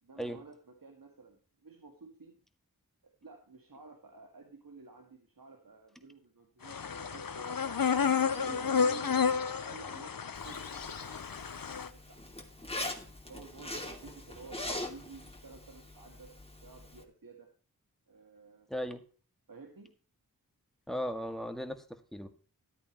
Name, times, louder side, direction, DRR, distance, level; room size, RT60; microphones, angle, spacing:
voice 1, 0.0-2.4 3.0-7.6 8.0-11.2 11.9-12.2 13.3-16.3 16.6-17.5 18.1-18.7 19.5-19.9, right 4 dB, 70° right, 3 dB, 2.1 m, -52 dB
sound 1, 6.7-11.9, left 6 dB, 70° left, 0.9 m, -31 dB
Zipper (clothing), 10.3-17.0, left 1 dB, 15° left, 2.5 m, -43 dB
voice 2, 18.7-19.0 20.9-22.3, equal, ahead, 7 dB, 1.9 m, -37 dB
13.5 x 8.6 x 3.0 m, 0.38 s
wide cardioid pair, 40°, 35 cm